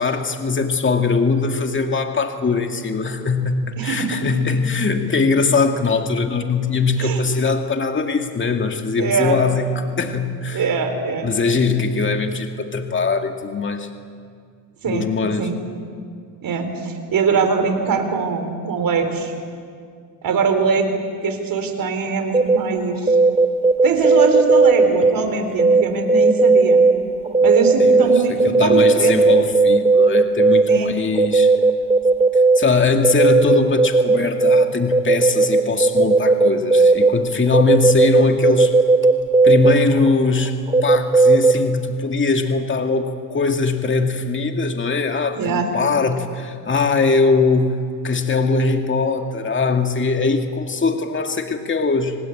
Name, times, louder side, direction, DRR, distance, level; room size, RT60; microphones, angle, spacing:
voice 1, 0.0-10.6 11.2-13.9 14.8-15.5 27.8-31.5 32.6-38.7 39.4-40.5 40.8-47.7 48.0-52.2, left 4 dB, 30° left, 5 dB, 2.2 m, -21 dB
voice 2, 3.8-4.2 7.0-7.2 9.0-9.4 10.5-11.3 14.8-15.1 15.4-15.6 16.4-19.3 20.2-20.9 21.2-23.2 23.8-26.8 27.4-29.2 30.7-30.9 45.3-45.7, right 5 dB, 55° right, 7 dB, 4.4 m, -22 dB
sound 1, 22.3-22.6 22.9-25.1 25.6-25.8 26.1-26.9 27.2-30.8 31.1-32.6 33.0-34.6 34.9-37.1 37.5-41.5, right 3 dB, 15° right, 2.4 m, -14 dB
26.5 x 19.5 x 8.7 m, 2.2 s
cardioid pair, 90°, 41 cm